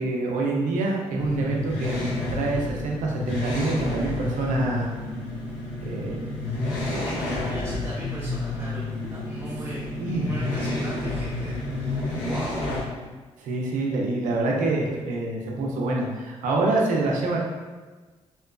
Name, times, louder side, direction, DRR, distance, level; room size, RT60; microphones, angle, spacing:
voice 1, 0.0-2.0 2.3-4.9 5.8-6.3 6.9-7.2 10.0-10.2 13.4-17.4, right 2 dB, 85° right, -1 dB, 0.5 m, -26 dB
sound 1, 1.2-12.8, left 2 dB, 75° left, 1.4 m, -30 dB
voice 2, 6.8-12.6, right 1 dB, 20° right, -7 dB, 0.6 m, -38 dB
2.9 x 2.3 x 2.2 m, 1.3 s
supercardioid pair, 55°, 13 cm